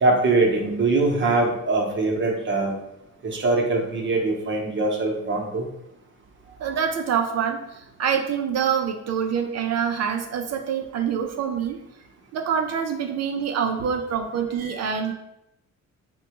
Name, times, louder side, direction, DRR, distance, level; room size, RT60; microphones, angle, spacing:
voice 1, 0.0-2.7 3.2-5.7 6.6-6.8 14.6-14.8 15.0-15.1, right 2 dB, 40° right, 0 dB, 0.8 m, -22 dB
voice 2, 6.6-11.8 12.3-15.1, right 7 dB, 60° right, 5 dB, 0.4 m, -26 dB
4.2 x 2.2 x 2.9 m, 0.85 s
cardioid pair, 90°, 30 cm